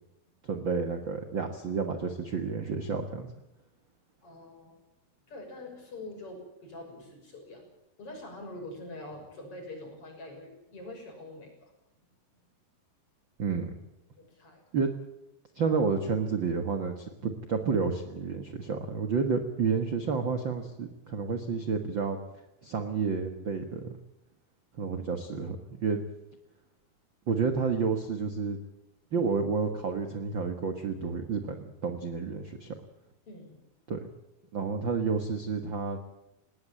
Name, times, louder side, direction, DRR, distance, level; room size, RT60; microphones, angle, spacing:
voice 1, 0.4-3.3 13.4-13.8 14.7-14.9 15.5-22.2 22.6-24.0 24.8-26.0 27.3-28.6 29.1-32.7 33.9-34.1 34.5-36.0, right 5 dB, 60° right, 6 dB, 1.2 m, -30 dB
voice 2, 4.2-4.8 5.3-7.6 8.0-11.7 14.2-14.6 33.3-33.6, left 2 dB, 35° left, 3 dB, 7.0 m, -44 dB
20.0 x 19.0 x 9.0 m, 0.88 s
omnidirectional pair, 4.6 m